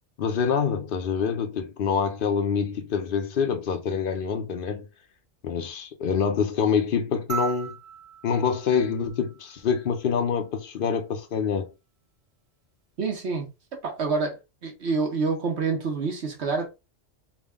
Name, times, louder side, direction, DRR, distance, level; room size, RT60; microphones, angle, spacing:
voice 1, 0.2-4.9 5.4-7.8 8.2-11.7, left 6 dB, 55° left, 0.7 m, -26 dB
sound 1, 7.3-9.9 11.5-11.6, right 6 dB, 45° right, 0.5 m, -37 dB
voice 2, 13.0-13.5 13.8-16.7, right 4 dB, 65° right, 1.2 m, -27 dB
3.5 x 2.2 x 3.5 m
omnidirectional pair, 1.2 m